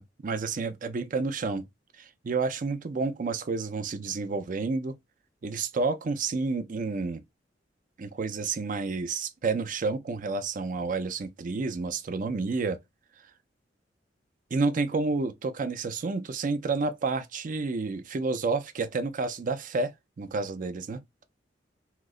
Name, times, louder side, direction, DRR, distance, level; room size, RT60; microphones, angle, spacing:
voice 1, 0.2-1.7 2.0-4.9 5.4-7.2 8.0-12.8 14.5-21.0, right 4 dB, 45° right, 0.4 m, -30 dB
2.8 x 2.1 x 3.5 m
head